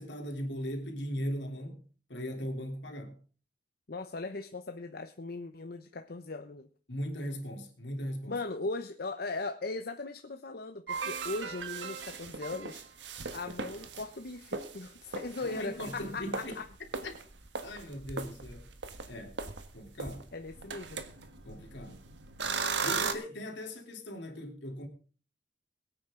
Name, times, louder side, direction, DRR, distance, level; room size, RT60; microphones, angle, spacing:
voice 1, 0.0-1.8 2.1-3.2 6.9-8.4 15.4-16.6 17.0-17.1 17.6-18.7 19.1-19.4 19.7-20.3 21.5-22.0 22.8-24.9, equal, 80° left, 3.4 m, -38 dB
voice 2, 3.9-6.7 8.3-13.0 13.3-16.7 20.3-21.0, left 3 dB, 60° left, 0.9 m, -38 dB
sound 1, 10.9-14.0 14.4-14.9 15.1-23.1, right 5 dB, 90° right, 1.6 m, -38 dB
22.0 x 9.0 x 3.8 m
head